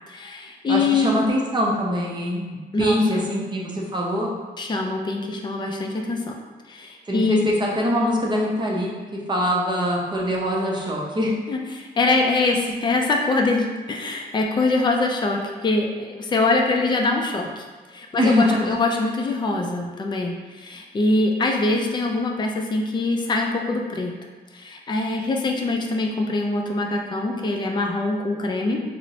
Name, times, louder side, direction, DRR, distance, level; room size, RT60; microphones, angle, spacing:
voice 1, 0.0-1.2 2.7-3.3 4.6-6.3 6.7-7.4 11.5-17.7 17.9-24.1 24.5-28.8, left 3 dB, 25° left, 1 dB, 0.4 m, -23 dB
voice 2, 0.7-4.3 7.1-9.0 9.3-11.4 18.2-18.8, equal, 25° right, -3 dB, 0.7 m, -23 dB
4.2 x 2.0 x 2.7 m, 1.3 s
cardioid pair, 110°, 17 cm